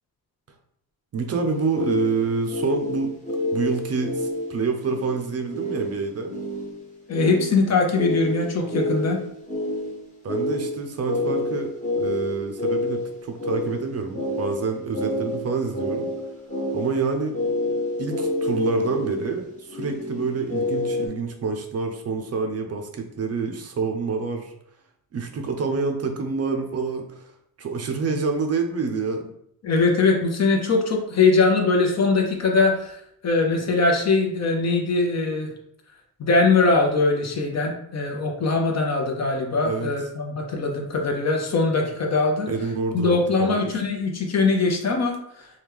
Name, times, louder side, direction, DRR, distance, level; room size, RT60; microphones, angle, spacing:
voice 1, 1.1-3.1 3.5-6.3 10.2-16.1 16.7-17.4 18.0-24.5 25.1-27.3 27.6-29.3 39.6-39.9 42.5-43.8, right 4 dB, 40° right, 5 dB, 0.5 m, -27 dB
sound 1, 1.5-21.1, left 1 dB, 20° left, 0.9 m, -29 dB
voice 2, 7.1-9.2 29.6-33.0 33.2-35.5 36.2-42.5 42.9-45.5, left 3 dB, 45° left, 2 dB, 0.7 m, -21 dB
3.0 x 2.3 x 3.4 m, 0.73 s
cardioid pair, 105°, 37 cm